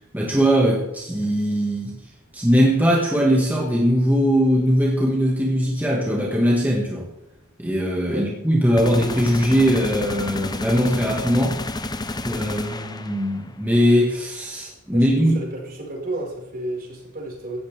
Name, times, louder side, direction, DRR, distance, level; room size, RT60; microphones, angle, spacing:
voice 1, 0.1-2.0 2.3-7.1 7.6-11.6 12.2-15.4, equal, 10° right, -3 dB, 2.0 m, -20 dB
sound 1, 8.8-13.5, left 2 dB, 20° left, 0.8 m, -30 dB
voice 2, 14.9-17.6, right 1 dB, 45° right, -1 dB, 5.6 m, -32 dB
17.0 x 15.0 x 3.6 m, 0.96 s
head